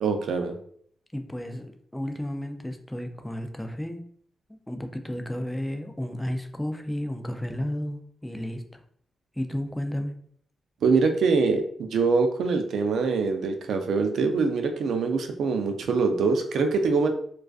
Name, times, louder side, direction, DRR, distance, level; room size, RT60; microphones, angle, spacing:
voice 1, 0.0-0.5 10.8-17.1, right 4 dB, 75° right, 5 dB, 0.3 m, -24 dB
voice 2, 1.1-1.7 1.9-4.0 4.5-8.6 9.4-10.1, left 1 dB, 5° left, 6 dB, 0.3 m, -32 dB
2.3 x 2.2 x 2.3 m, 0.62 s
cardioid pair, 80°, 0 cm